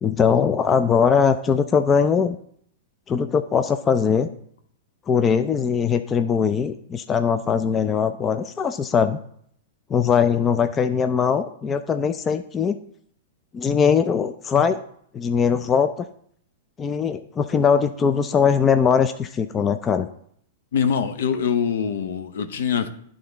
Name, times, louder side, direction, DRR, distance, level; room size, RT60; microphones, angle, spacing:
voice 1, 0.0-2.4 3.1-4.3 5.1-9.2 9.9-12.8 13.5-14.8 15.1-15.9 16.8-20.1, left 6 dB, 20° left, 9 dB, 0.4 m, -20 dB
voice 2, 20.7-22.9, left 7 dB, 70° left, 8 dB, 0.8 m, -23 dB
11.0 x 3.8 x 4.0 m, 0.65 s
hypercardioid pair, 125°, 0 cm